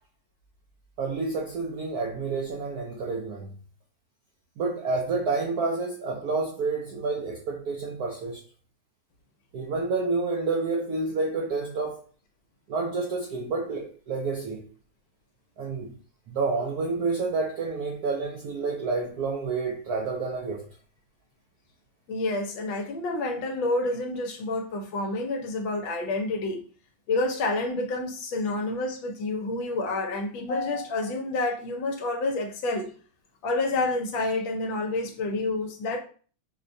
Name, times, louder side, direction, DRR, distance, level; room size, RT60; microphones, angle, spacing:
voice 1, 1.0-3.5 4.6-8.4 9.5-12.0 12.7-14.7 15.6-15.9 16.3-20.6, right 4 dB, 75° right, 0.8 m, -29 dB
voice 2, 22.1-26.6 27.1-32.9 33.4-36.0, left 2 dB, 75° left, 1.3 m, -28 dB
4.8 x 2.2 x 2.6 m
omnidirectional pair, 2.3 m